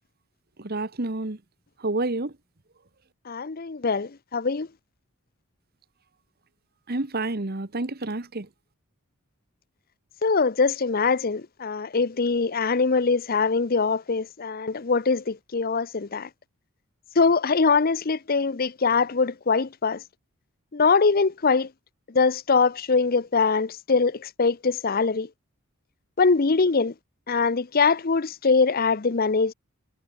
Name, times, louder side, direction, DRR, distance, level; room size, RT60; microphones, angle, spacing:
voice 1, 0.6-1.4 1.8-2.3 6.9-8.5, right 2 dB, 45° right, 1.3 m, -29 dB
voice 2, 3.3-4.7 10.2-16.3 17.2-20.0 20.7-21.7 22.1-25.3 26.2-26.9 27.3-29.5, left 4 dB, 40° left, 0.7 m, -23 dB
head